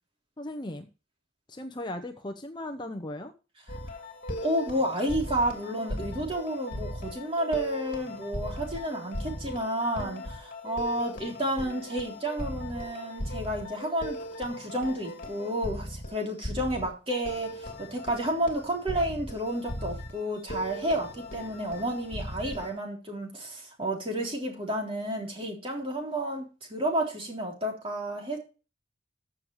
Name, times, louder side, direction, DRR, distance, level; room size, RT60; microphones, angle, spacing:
voice 1, 0.4-0.9 1.5-3.3, left 1 dB, 25° left, 0.8 m, -37 dB
sound 1, 3.7-22.7, equal, 50° left, 2.9 m, -38 dB
voice 2, 4.4-28.4, right 1 dB, 30° right, 3.5 m, -31 dB
14.5 x 7.2 x 3.1 m
head